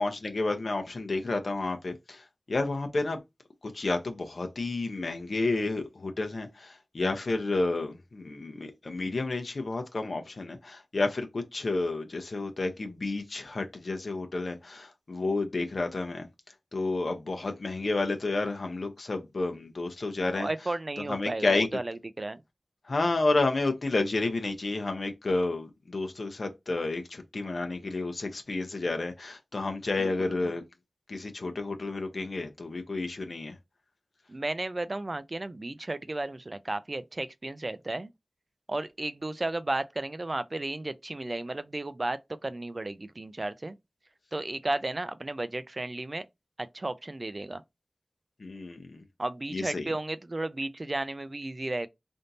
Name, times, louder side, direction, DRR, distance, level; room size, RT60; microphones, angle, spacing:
voice 1, 0.0-3.2 3.6-16.3 16.7-21.7 22.8-30.6 31.1-33.6 48.4-49.0 49.5-49.9, left 2 dB, 75° left, 0.7 m, -31 dB
voice 2, 20.4-22.4 30.0-30.5 34.3-38.1 38.7-43.7 44.3-46.3 46.6-47.6 49.2-51.9, right 2 dB, 45° right, 0.5 m, -34 dB
3.5 x 2.7 x 4.0 m
wide cardioid pair, 55°, 0 cm